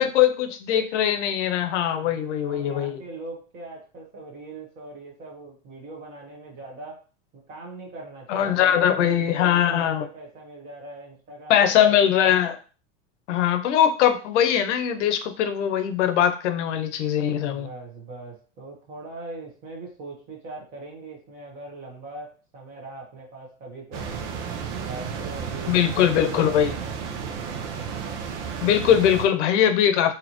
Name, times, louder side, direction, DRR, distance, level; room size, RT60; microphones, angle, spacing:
voice 1, 0.0-3.0 8.3-10.0 11.5-12.6 13.3-17.7 25.7-26.7 28.6-30.1, left 10 dB, 85° left, 8 dB, 0.7 m, -21 dB
voice 2, 1.9-7.0 7.3-12.0 17.4-24.1 24.8-27.1, right 2 dB, 25° right, -1 dB, 1.1 m, -41 dB
sound 1, 23.9-29.2, right 6 dB, 80° right, 0.9 m, -32 dB
4.1 x 2.8 x 3.0 m, 0.37 s
supercardioid pair, 175°, 35 cm